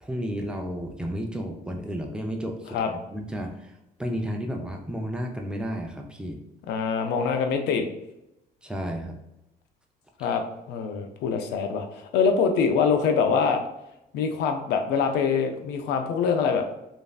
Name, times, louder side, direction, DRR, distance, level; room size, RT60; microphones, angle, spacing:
voice 1, 0.0-2.8 3.1-3.7 4.0-6.4 8.6-9.1, equal, 5° right, 1 dB, 0.4 m, -32 dB
voice 2, 6.7-7.9 10.2-13.6 14.1-16.6, left 6 dB, 80° left, 5 dB, 0.5 m, -24 dB
3.1 x 2.5 x 2.3 m, 0.89 s
cardioid pair, 110°, 17 cm